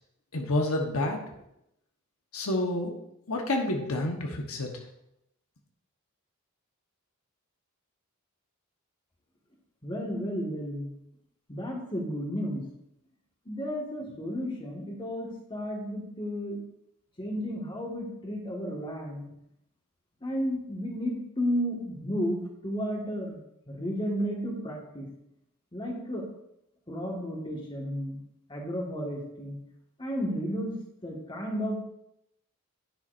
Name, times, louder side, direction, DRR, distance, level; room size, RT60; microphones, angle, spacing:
voice 1, 0.3-1.2 2.3-3.0 3.3-4.7, left 1 dB, 70° left, 1 dB, 1.3 m, -29 dB
voice 2, 9.8-10.9 11.5-12.6 13.5-16.6 17.2-19.3 20.2-23.4 23.7-25.1 25.7-26.3 26.9-28.2 28.5-29.6 30.0-30.8 31.0-31.8, equal, 20° left, -1 dB, 1.8 m, -33 dB
10.5 x 10.5 x 2.7 m, 0.80 s
head